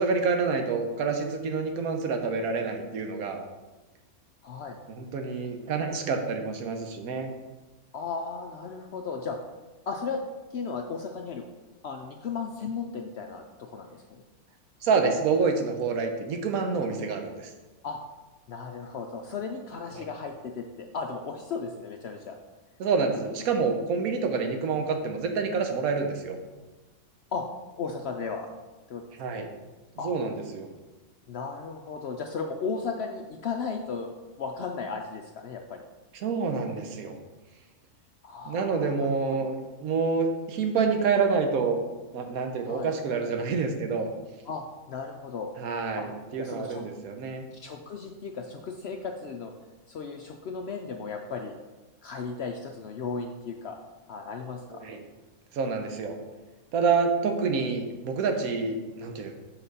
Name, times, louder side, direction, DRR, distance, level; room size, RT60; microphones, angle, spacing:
voice 1, 0.0-3.4 4.9-7.3 14.8-17.5 19.9-20.1 22.8-26.4 29.2-29.5 30.0-30.7 36.1-37.2 38.4-41.8 42.1-44.1 45.6-47.5 54.7-55.0 55.5-56.2 56.7-59.4, right 5 dB, 75° right, 5 dB, 1.3 m, -27 dB
voice 2, 4.4-4.8 7.9-9.4 9.9-10.2 10.5-11.4 11.8-14.2 17.8-18.0 18.5-22.4 27.3-27.4 27.8-28.5 28.9-29.0 29.3-29.4 30.0-30.1 31.3-34.1 34.4-35.8 38.2-39.5 42.7-42.9 44.5-45.5 46.0-46.1 46.4-46.8 47.5-49.5 49.9-51.5 52.0-53.8 54.1-54.8, left 5 dB, 70° left, 3 dB, 0.6 m, -35 dB
6.0 x 5.8 x 4.0 m, 1.2 s
omnidirectional pair, 1.6 m